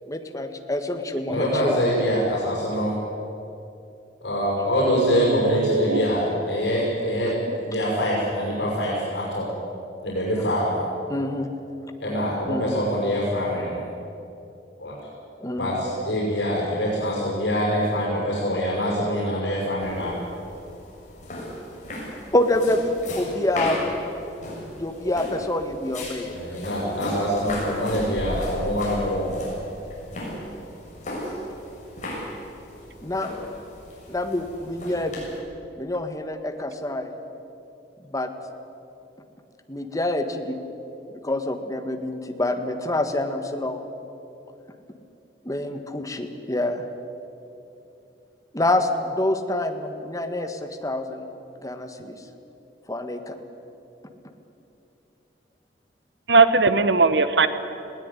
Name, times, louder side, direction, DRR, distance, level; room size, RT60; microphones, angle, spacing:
voice 1, 0.1-1.8 11.1-11.5 12.5-12.8 15.4-15.8 22.3-23.9 24.8-26.4 33.0-33.3 34.1-35.3 35.8-37.1 38.1-38.3 39.7-40.6 41.1-43.8 45.4-46.9 48.5-51.3 51.6-52.2 52.9-53.4, left 1 dB, 20° left, 7 dB, 1.6 m, -26 dB
voice 2, 1.3-3.0 4.2-7.3 7.6-9.5 10.0-10.8 12.0-13.8 14.8-14.9 15.6-20.1 26.2-29.5, equal, 85° left, -5 dB, 6.3 m, -25 dB
voice 3, 4.8-6.1 15.9-16.0 56.3-57.5, right 3 dB, 80° right, 12 dB, 1.2 m, -20 dB
sound 1, 19.8-35.4, left 1 dB, 45° left, 7.0 m, -35 dB
20.5 x 17.0 x 9.9 m, 2.8 s
head